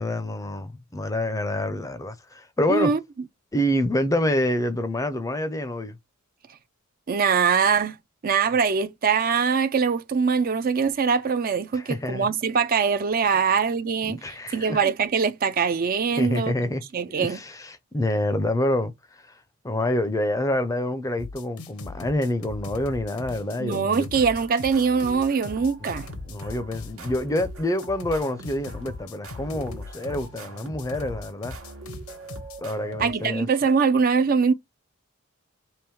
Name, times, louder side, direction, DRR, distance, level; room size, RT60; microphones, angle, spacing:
voice 1, 0.0-2.9 3.5-6.0 11.7-12.3 13.4-13.5 14.1-14.9 16.2-16.8 17.1-24.1 25.8-26.0 26.3-31.5 32.6-33.5, left 1 dB, 15° left, 0.5 m, -27 dB
voice 2, 2.7-3.0 7.1-8.0 8.2-14.2 14.5-16.5 16.9-17.4 23.6-26.1 33.0-34.5, right 5 dB, 40° right, 0.4 m, -22 dB
sound 1, 21.2-32.6, left 3 dB, 85° left, 0.8 m, -39 dB
sound 2, 24.1-33.7, right 2 dB, 80° right, 1.2 m, -42 dB
3.4 x 3.0 x 4.6 m
head